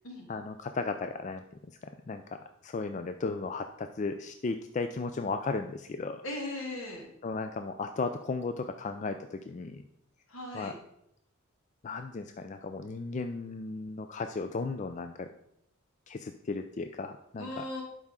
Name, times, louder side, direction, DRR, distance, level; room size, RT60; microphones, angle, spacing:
voice 1, 0.3-2.4 2.6-6.2 7.2-9.8 10.5-10.7 11.8-15.3 16.1-17.6, left 4 dB, 35° left, 8 dB, 0.3 m, -35 dB
voice 2, 6.2-7.1 10.3-10.7 17.4-17.8, left 1 dB, 75° left, 0 dB, 2.2 m, -38 dB
11.5 x 4.8 x 3.7 m, 0.77 s
head